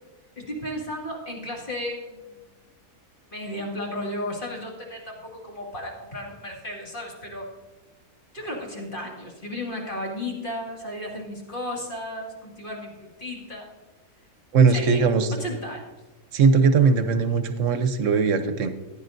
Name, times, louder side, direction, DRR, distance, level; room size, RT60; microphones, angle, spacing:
voice 1, 0.4-2.3 3.3-7.5 8.3-13.7 14.7-15.0 15.3-15.9, left 1 dB, 40° left, -2 dB, 2.4 m, -34 dB
voice 2, 14.5-15.3 16.3-18.7, right 5 dB, 70° right, 9 dB, 1.1 m, -19 dB
15.0 x 10.5 x 2.6 m, 1.2 s
omnidirectional pair, 1.4 m